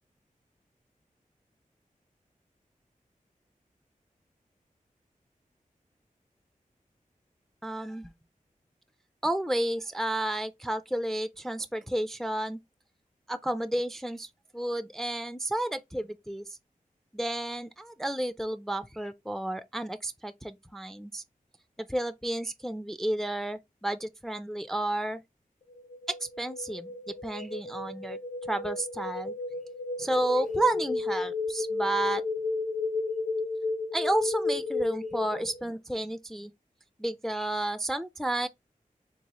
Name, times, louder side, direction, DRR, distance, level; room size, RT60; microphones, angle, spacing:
voice 1, 7.6-8.1 9.2-12.6 13.3-16.6 17.1-21.2 21.8-25.2 26.1-26.9 27.2-29.3 30.0-32.2 33.9-36.5 37.0-38.5, right 1 dB, 5° left, 0.3 m, -31 dB
sound 1, 25.7-35.6, left 3 dB, 65° left, 0.8 m, -33 dB
3.9 x 2.1 x 2.9 m
wide cardioid pair, 60°, 14 cm